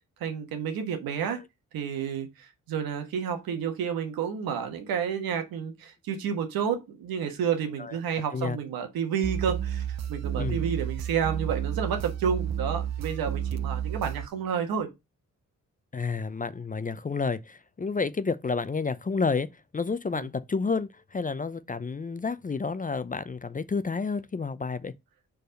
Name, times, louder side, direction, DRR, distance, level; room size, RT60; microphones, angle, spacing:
voice 1, 0.2-1.4 1.7-14.9 20.1-20.2, right 7 dB, 85° right, 1.4 m, -30 dB
sound 1, 9.2-14.3, right 9 dB, 50° right, 0.6 m, -31 dB
voice 2, 15.9-19.5 19.7-24.9, left 4 dB, 25° left, 0.5 m, -30 dB
4.9 x 4.7 x 5.2 m
supercardioid pair, 60°, 34 cm